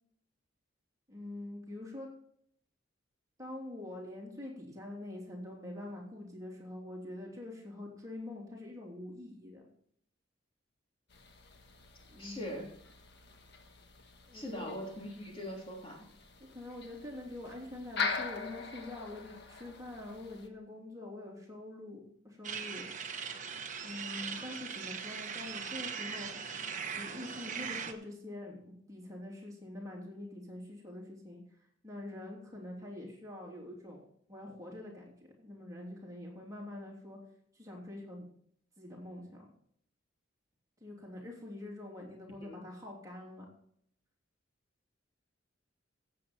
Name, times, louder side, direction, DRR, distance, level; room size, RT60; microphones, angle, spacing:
voice 1, 1.1-2.1 3.4-9.7 12.1-12.6 14.3-14.7 16.5-22.9 23.8-26.3 26.9-31.4 31.8-35.0 35.4-37.2 37.5-38.2 38.8-39.5 40.8-43.5, left 1 dB, 15° right, -2 dB, 3.1 m, -45 dB
sound 1, 11.1-20.5, left 4 dB, 60° left, 1.4 m, -43 dB
voice 2, 12.2-12.7 14.3-16.0 42.4-42.6, equal, 30° left, -2 dB, 3.2 m, -41 dB
sound 2, 22.4-27.9, right 6 dB, 40° right, 1.1 m, -40 dB
16.0 x 7.9 x 4.3 m, 0.65 s
head